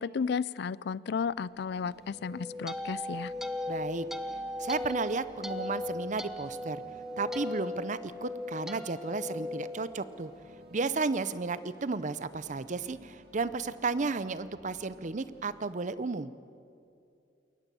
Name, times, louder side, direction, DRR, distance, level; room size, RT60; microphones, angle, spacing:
voice 1, 0.0-3.3, left 6 dB, 60° left, 21 dB, 0.4 m, -33 dB
sound 1, 1.2-15.8, equal, 60° right, 2.0 m, -55 dB
sound 2, 2.1-10.5, left 2 dB, ahead, 0.8 m, -38 dB
voice 2, 3.7-4.1 4.6-6.8 7.2-10.3 10.7-16.3, right 4 dB, 40° right, 15 dB, 0.6 m, -33 dB
22.0 x 18.5 x 6.9 m, 2.5 s
head